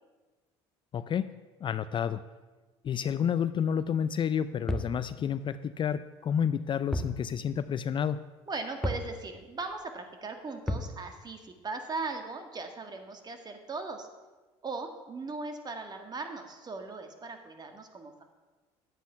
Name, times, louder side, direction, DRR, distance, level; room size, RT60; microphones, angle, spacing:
voice 1, 0.9-1.3 1.6-2.2 2.8-8.2, left 8 dB, 40° left, 14 dB, 0.4 m, -30 dB
sound 1, 4.7-5.0 6.9-7.2 7.5-7.6 8.8-9.1 10.7-11.0, left 1 dB, 5° left, 1.2 m, -31 dB
voice 2, 8.5-14.1 14.6-18.2, right 3 dB, 30° right, 6 dB, 1.7 m, -38 dB
10.5 x 8.1 x 5.7 m, 1.3 s
supercardioid pair, 85°, 13 cm